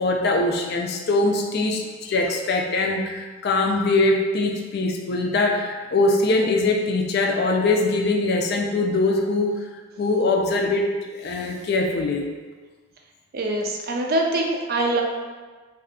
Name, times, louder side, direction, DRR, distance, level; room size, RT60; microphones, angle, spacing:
voice 1, 0.0-12.3, left 2 dB, 50° left, 2 dB, 0.4 m, -22 dB
voice 2, 13.3-15.0, right 2 dB, 45° right, 2 dB, 0.4 m, -23 dB
2.7 x 2.4 x 3.5 m, 1.4 s
head